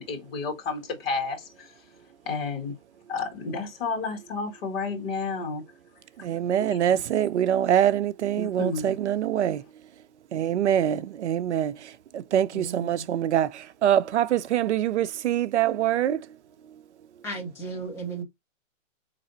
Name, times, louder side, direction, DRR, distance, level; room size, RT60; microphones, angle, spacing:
voice 1, 0.0-1.4 2.3-2.7 3.1-5.6 6.6-7.0 8.4-9.0, left 4 dB, 45° left, 1.8 m, -31 dB
voice 2, 6.2-9.6 10.3-16.2, right 10 dB, 60° right, 0.5 m, -24 dB
voice 3, 12.5-13.0 17.2-18.2, right 3 dB, 5° left, 0.7 m, -35 dB
4.1 x 3.3 x 2.6 m
hypercardioid pair, 160°, 39 cm